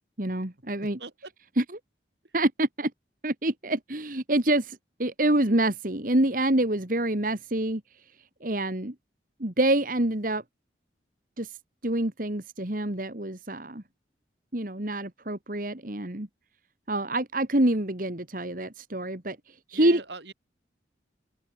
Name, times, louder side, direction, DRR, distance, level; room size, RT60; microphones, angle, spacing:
voice 1, 0.2-1.0 1.6-1.8 2.3-2.9 3.2-7.8 8.4-8.9 9.4-10.4 11.4-11.6 11.8-13.8 14.5-16.3 16.9-20.0, right 1 dB, 45° right, 2.1 m, -26 dB
voice 2, 0.8-1.3 19.7-20.3, right 3 dB, 70° right, 3.7 m, -41 dB
head